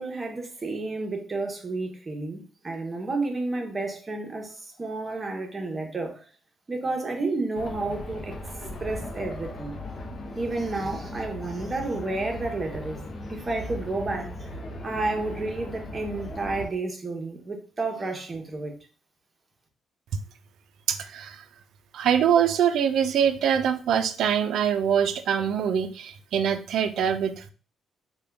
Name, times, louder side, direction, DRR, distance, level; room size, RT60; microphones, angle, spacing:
voice 1, 0.0-6.2 6.7-8.3 8.8-9.7 10.4-13.0 13.3-14.5 14.8-18.9, right 2 dB, 30° right, 0.8 m, -31 dB
sound 1, 7.6-16.7, left 1 dB, 45° left, 0.6 m, -38 dB
voice 2, 20.9-21.4 21.9-27.5, right 8 dB, 75° right, 0.4 m, -24 dB
3.5 x 2.2 x 3.4 m
cardioid pair, 90°, 0 cm